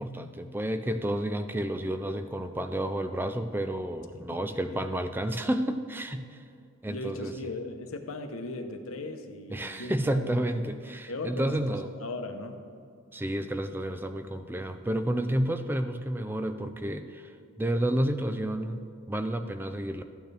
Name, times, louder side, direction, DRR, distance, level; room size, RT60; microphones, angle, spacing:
voice 1, 0.0-6.4 6.8-7.3 9.5-11.9 13.1-20.0, right 1 dB, 10° right, 8 dB, 0.4 m, -30 dB
voice 2, 4.3-4.8 6.9-10.3 11.1-11.6 12.0-12.6, left 2 dB, 85° left, 6 dB, 0.9 m, -38 dB
13.5 x 9.1 x 3.4 m, 2.3 s
head